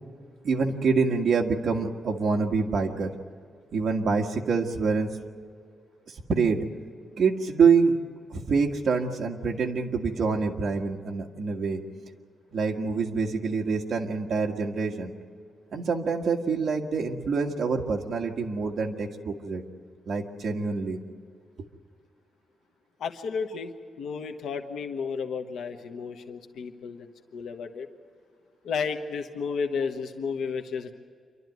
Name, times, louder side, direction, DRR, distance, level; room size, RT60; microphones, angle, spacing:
voice 1, 0.4-3.1 3.7-5.1 6.1-6.7 7.2-8.0 8.3-11.8 12.5-15.1 15.7-19.6 20.1-21.0 21.6-21.7, right 5 dB, 50° right, 2 dB, 1.7 m, -26 dB
voice 2, 23.0-27.9 28.6-30.9, left 5 dB, 85° left, 6 dB, 1.1 m, -32 dB
27.5 x 12.5 x 9.3 m, 2.2 s
wide cardioid pair, 170°, 0 cm